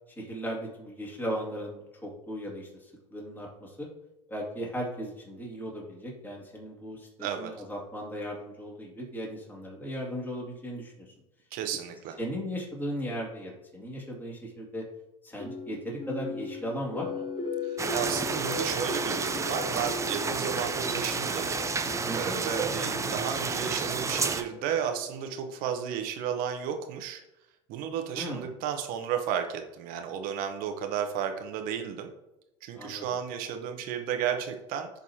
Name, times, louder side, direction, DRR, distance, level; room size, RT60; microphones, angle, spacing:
voice 1, 0.2-3.9 4.3-11.1 12.2-14.8 15.2-17.2 22.0-22.4 28.1-28.5 32.8-33.1, equal, 10° left, -3 dB, 2.4 m, -37 dB
voice 2, 7.2-7.5 11.5-12.2 17.6-21.5 22.2-27.2 27.7-32.1 32.6-34.9, right 8 dB, 60° right, 6 dB, 1.0 m, -33 dB
sound 1, 15.4-25.5, left 4 dB, 40° left, 2.6 m, -38 dB
sound 2, 17.8-24.4, right 4 dB, 20° right, 0.6 m, -31 dB
11.0 x 4.0 x 2.9 m, 0.94 s
hypercardioid pair, 90°, 17 cm